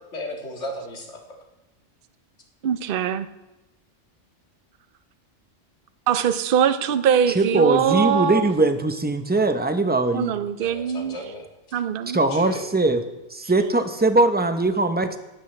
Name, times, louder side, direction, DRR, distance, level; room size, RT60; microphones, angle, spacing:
voice 1, 0.0-1.4 10.6-11.4 12.3-12.6, left 1 dB, 70° left, 1 dB, 2.1 m, -35 dB
voice 2, 2.6-3.3 6.1-8.4 10.1-11.2 11.7-12.2, right 8 dB, 55° right, 11 dB, 0.7 m, -22 dB
voice 3, 7.3-10.3 12.1-13.0 13.3-15.2, right 2 dB, 10° right, 8 dB, 0.5 m, -21 dB
17.5 x 12.0 x 3.3 m, 1.0 s
omnidirectional pair, 1.3 m